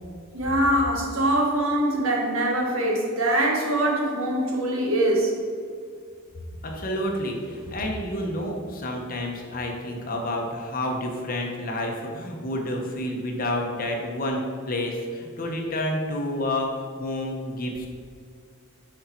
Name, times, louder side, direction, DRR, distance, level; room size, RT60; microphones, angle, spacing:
voice 1, 0.3-5.4, right 1 dB, 90° right, 0 dB, 1.5 m, -23 dB
voice 2, 6.6-16.7 17.0-17.9, left 1 dB, 45° left, 1 dB, 1.1 m, -29 dB
6.5 x 5.6 x 4.4 m, 2.2 s
head